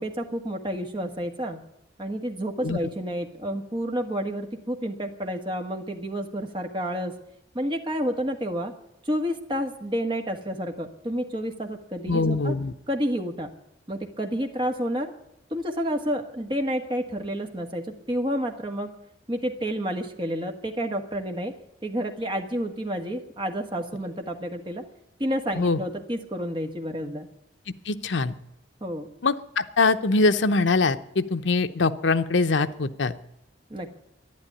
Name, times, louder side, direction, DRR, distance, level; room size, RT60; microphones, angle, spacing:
voice 1, 0.0-1.6 2.0-7.1 7.5-8.7 9.0-12.5 12.9-13.5 13.9-15.1 15.5-18.9 19.3-21.5 21.8-24.8 25.2-27.3 28.8-29.1 33.7-34.0, equal, 25° right, 4 dB, 1.6 m, -30 dB
voice 2, 12.1-12.7 25.6-25.8 27.9-28.3 29.2-33.1, left 3 dB, 75° left, 11 dB, 0.8 m, -23 dB
12.0 x 11.0 x 9.8 m, 0.82 s
head